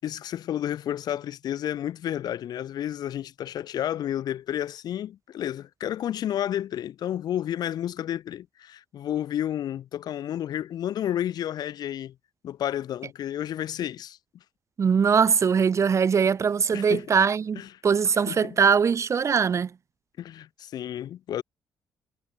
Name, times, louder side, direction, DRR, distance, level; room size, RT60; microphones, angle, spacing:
voice 1, 0.0-12.1 12.4-14.2 16.7-17.1 17.6-17.7 18.3-18.6 20.2-21.4, left 11 dB, 70° left, 7.8 m, -31 dB
voice 2, 14.8-19.7, right 6 dB, 45° right, 0.8 m, -22 dB
supercardioid pair, 65°, 7 cm